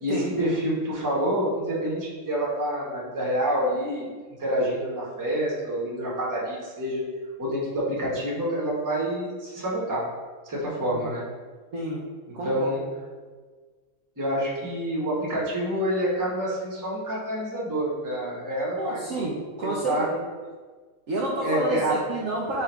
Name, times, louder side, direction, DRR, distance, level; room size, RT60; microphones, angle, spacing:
voice 1, 0.0-4.1 4.4-7.0 7.4-10.0 10.4-11.2 12.4-12.8 14.2-19.2 19.6-20.1 21.4-21.9, right 1 dB, 15° right, -6 dB, 0.8 m, -27 dB
voice 2, 11.7-12.0 12.3-12.5 18.8-20.2 21.1-22.6, right 2 dB, 65° right, -4 dB, 0.8 m, -29 dB
4.7 x 2.5 x 4.4 m, 1.4 s
omnidirectional pair, 1.9 m